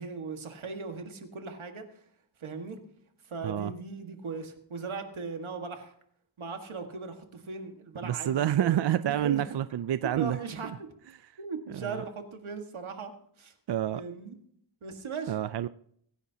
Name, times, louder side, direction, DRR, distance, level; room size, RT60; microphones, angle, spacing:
voice 1, 0.0-1.9 2.4-2.8 3.2-5.9 6.4-9.4 10.2-10.7 11.4-13.1 13.4-13.5 13.9-14.4 14.8-15.3, right 4 dB, 85° right, 5 dB, 1.8 m, -38 dB
voice 2, 8.0-10.4 11.7-12.0 13.7-14.0 15.3-15.7, right 11 dB, 60° right, 14 dB, 0.5 m, -28 dB
24.0 x 10.5 x 2.8 m, 0.67 s
wide cardioid pair, 85°, 47 cm